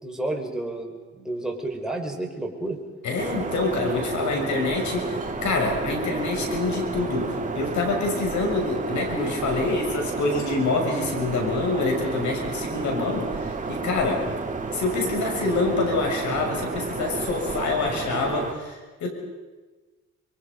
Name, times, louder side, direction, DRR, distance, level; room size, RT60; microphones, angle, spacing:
voice 1, 0.0-2.8, right 2 dB, ahead, 0 dB, 4.7 m, -31 dB
voice 2, 3.0-14.3 14.7-19.1, left 3 dB, 70° left, 2 dB, 6.4 m, -26 dB
sound 1, 3.2-18.5, right 4 dB, 25° right, 2.5 m, -31 dB
26.5 x 23.0 x 5.3 m, 1.3 s
cardioid pair, 90°, 30 cm